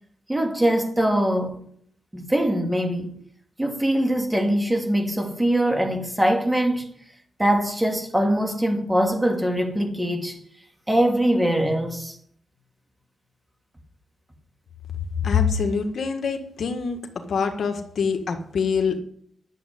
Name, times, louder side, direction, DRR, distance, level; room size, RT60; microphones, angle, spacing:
voice 1, 0.3-1.6 2.1-3.1 3.6-6.9 7.4-10.4 10.9-12.2, right 1 dB, 10° right, 2.6 m, -22 dB
voice 2, 15.2-17.0 17.3-19.0, left 6 dB, 65° left, 1.7 m, -24 dB
11.0 x 7.5 x 9.9 m
wide cardioid pair, 120°, 0 cm